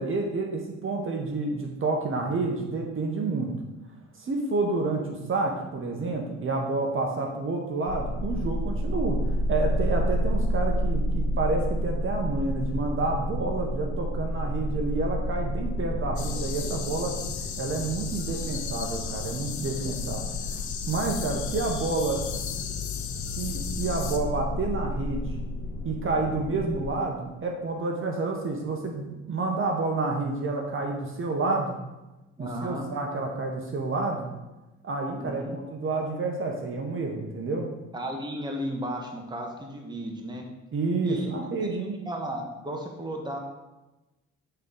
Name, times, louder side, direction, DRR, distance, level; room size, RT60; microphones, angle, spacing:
voice 1, 0.0-3.5 4.2-17.1 17.6-20.2 20.5-20.6 20.9-22.2 23.4-25.4 25.8-31.8 32.4-34.3 34.8-37.7 40.7-42.0, right 3 dB, 45° right, 1 dB, 1.0 m, -29 dB
sound 1, 7.9-26.9, left 1 dB, 40° left, 1.9 m, -30 dB
sound 2, 16.2-24.2, left 8 dB, 75° left, 0.8 m, -37 dB
voice 2, 32.4-32.9 35.2-35.6 37.9-40.5 41.0-41.3 41.6-43.4, right 1 dB, 15° right, 1 dB, 1.2 m, -35 dB
7.9 x 3.9 x 3.9 m, 1.1 s
cardioid pair, 90°, 30 cm